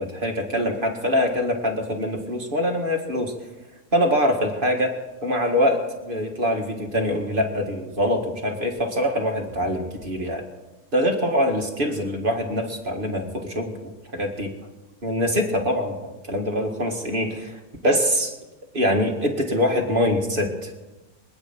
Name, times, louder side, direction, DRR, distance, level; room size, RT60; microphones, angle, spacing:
voice 1, 0.0-3.3 3.9-4.9 5.2-10.4 10.9-14.5 15.0-15.9 16.2-18.3 18.7-20.7, equal, 35° right, 2 dB, 2.1 m, -24 dB
24.5 x 9.2 x 6.0 m, 1.1 s
omnidirectional pair, 1.6 m